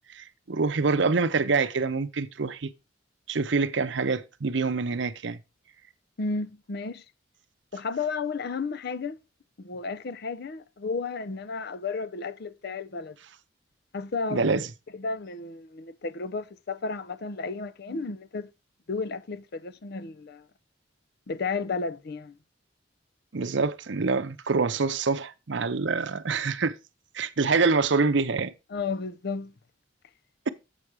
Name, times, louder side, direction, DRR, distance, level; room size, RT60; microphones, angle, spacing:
voice 1, 0.1-2.7 3.3-5.4 14.3-14.7 23.3-26.7 27.1-28.5, right 4 dB, 65° right, 0.7 m, -26 dB
voice 2, 6.2-7.0 7.7-9.2 9.6-13.2 13.9-14.6 14.9-18.5 18.9-20.5 21.3-22.4 28.7-29.5, left 4 dB, 55° left, 0.5 m, -33 dB
7.6 x 6.0 x 4.8 m
head